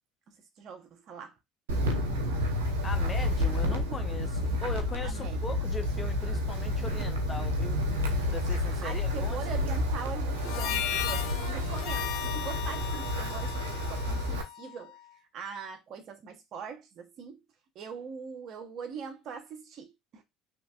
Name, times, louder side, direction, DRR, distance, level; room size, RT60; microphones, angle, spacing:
voice 1, 0.3-1.3 5.0-5.4 8.8-15.0 15.3-17.4 17.7-20.2, right 6 dB, 55° right, 0.9 m, -42 dB
Wind, 1.7-14.4, left 1 dB, 85° right, 0.9 m, -30 dB
voice 2, 2.8-7.8 8.3-9.4, left 3 dB, 25° left, 0.7 m, -40 dB
Harmonica, 10.4-15.0, left 12 dB, 65° left, 0.4 m, -36 dB
3.2 x 3.1 x 2.4 m
hypercardioid pair, 75°, 0 cm